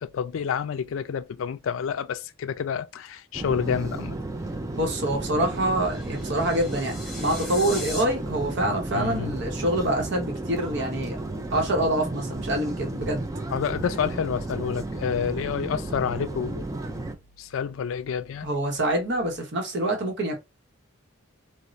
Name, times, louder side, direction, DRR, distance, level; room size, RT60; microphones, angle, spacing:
voice 1, 0.0-4.2 8.9-9.4 13.5-16.7 17.4-18.5, left 7 dB, 70° left, 0.3 m, -29 dB
sound 1, 3.3-17.2, right 2 dB, 15° right, 0.3 m, -33 dB
voice 2, 4.7-11.2 11.5-13.2 18.4-20.4, right 1 dB, 60° right, 0.8 m, -26 dB
sound 2, 5.4-8.0, left 2 dB, ahead, 0.7 m, -39 dB
2.5 x 2.0 x 3.0 m
head